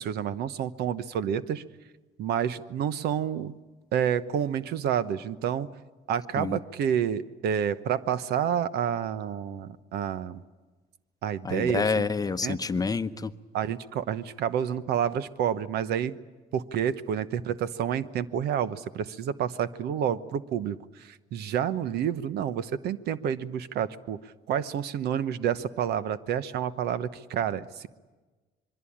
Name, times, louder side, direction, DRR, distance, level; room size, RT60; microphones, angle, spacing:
voice 1, 0.0-1.6 2.2-3.6 3.9-5.7 6.1-10.4 11.2-12.1 12.4-12.6 13.5-16.2 16.5-27.9, right 9 dB, 75° right, 14 dB, 1.1 m, -29 dB
voice 2, 11.4-13.3, left 4 dB, 20° left, 10 dB, 0.9 m, -28 dB
26.0 x 22.5 x 8.7 m, 1.3 s
cardioid pair, 110°, 17 cm